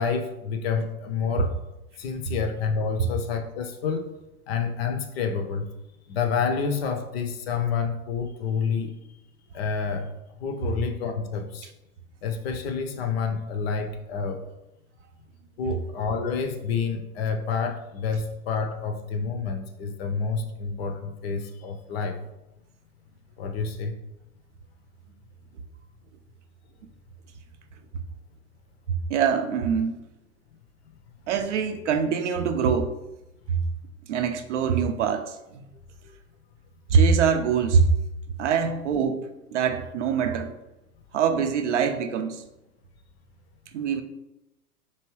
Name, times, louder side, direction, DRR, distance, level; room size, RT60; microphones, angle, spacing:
voice 1, 0.0-1.5 2.0-4.1 4.5-5.7 6.1-8.9 9.5-10.1 10.4-11.7 12.2-14.4 15.6-22.2 23.4-23.9 38.5-38.6, left 5 dB, 45° left, 5 dB, 0.6 m, -28 dB
voice 2, 29.1-30.0 31.3-32.9 33.5-33.6 34.1-35.6 36.9-37.9 38.4-40.5 41.1-42.4 43.7-44.0, right 6 dB, 55° right, 7 dB, 0.5 m, -24 dB
4.5 x 2.9 x 3.0 m, 0.92 s
figure-of-eight pair, 100°, 45 cm